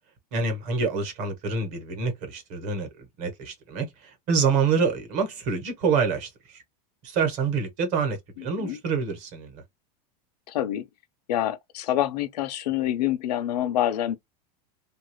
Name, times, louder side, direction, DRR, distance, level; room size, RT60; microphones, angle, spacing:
voice 1, 0.3-2.9 3.2-6.6 7.0-9.6, right 5 dB, 35° right, 1.2 m, -27 dB
voice 2, 8.4-8.8 10.5-10.9 11.3-14.2, left 12 dB, 80° left, 0.7 m, -27 dB
2.9 x 2.6 x 3.0 m
supercardioid pair, 170°, 20 cm